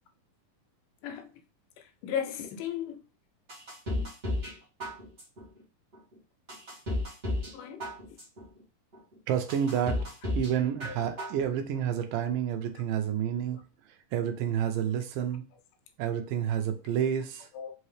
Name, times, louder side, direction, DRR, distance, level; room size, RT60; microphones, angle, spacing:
voice 1, 1.8-3.0 4.0-4.1 7.5-7.9 10.8-11.0 17.5-17.7, left 9 dB, 80° left, 2.3 m, -36 dB
sound 1, 3.5-4.5 4.8-5.4 5.9-6.0 6.5-7.5 7.8-8.4 8.9-9.0 9.5-10.5 10.8-11.4 11.7-11.8, left 1 dB, 40° right, 0.8 m, -33 dB
voice 2, 9.3-10.1 10.3-13.6 14.1-15.4 16.0-17.5, right 9 dB, 85° right, 2.3 m, -29 dB
5.5 x 2.8 x 3.2 m
omnidirectional pair, 3.9 m